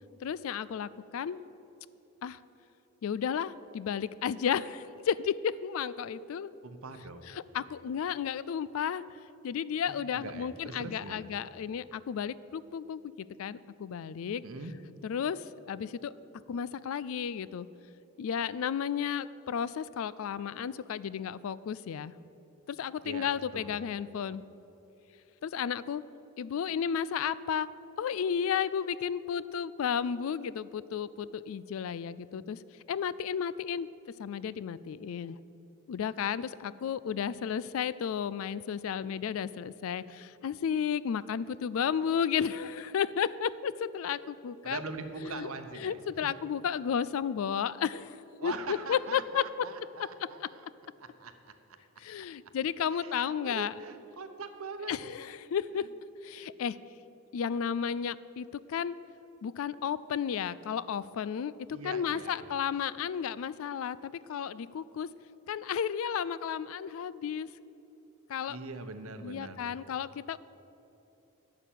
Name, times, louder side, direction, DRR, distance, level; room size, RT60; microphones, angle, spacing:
voice 1, 0.2-1.4 2.2-2.4 3.0-6.5 7.3-9.0 9.4-14.4 15.0-15.4 15.7-16.1 16.5-17.7 18.2-22.1 22.7-24.4 25.4-26.0 26.4-27.7 28.0-32.6 32.9-33.9 34.2-35.4 35.9-44.8 45.3-45.5 45.8-48.1 48.4-49.7 50.4-50.5 52.0-53.7 54.9-55.8 56.2-56.8 57.3-58.9 59.4-61.5 61.8-65.1 65.5-67.5 68.3-68.6 69.2-70.4, left 7 dB, 65° left, 18 dB, 0.3 m, -33 dB
voice 2, 6.6-7.2 9.9-11.3 14.4-14.7 23.0-23.7 44.6-46.0 46.2-46.3 48.4-50.7 51.0-51.5 52.9-54.9 61.7-62.5 68.5-69.6, right 3 dB, 70° right, 8 dB, 0.9 m, -42 dB
11.5 x 5.9 x 9.0 m, 3.0 s
head